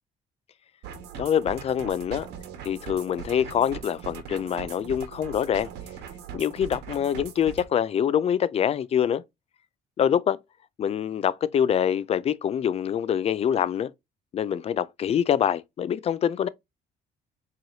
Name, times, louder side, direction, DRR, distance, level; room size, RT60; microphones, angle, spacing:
sound 1, 0.8-7.7, right 8 dB, 85° right, 1.2 m, -40 dB
voice 1, 1.2-2.3 2.7-5.7 6.3-9.2 10.0-10.4 10.8-13.9 14.3-16.5, left 9 dB, 35° left, 0.4 m, -25 dB
4.6 x 3.1 x 2.6 m
cardioid pair, 110°, 17 cm